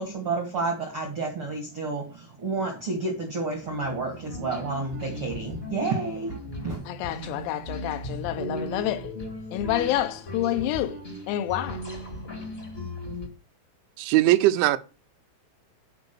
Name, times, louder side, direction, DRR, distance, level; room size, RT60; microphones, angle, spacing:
voice 1, 0.0-6.8, right 3 dB, 65° right, 1.3 m, -30 dB
sound 1, 3.6-13.3, equal, 60° left, 0.6 m, -37 dB
voice 2, 6.9-9.1 9.5-11.9, left 13 dB, 85° left, 3.6 m, -28 dB
voice 3, 14.0-14.8, right 15 dB, 80° right, 2.8 m, -20 dB
11.0 x 4.9 x 6.8 m
omnidirectional pair, 6.0 m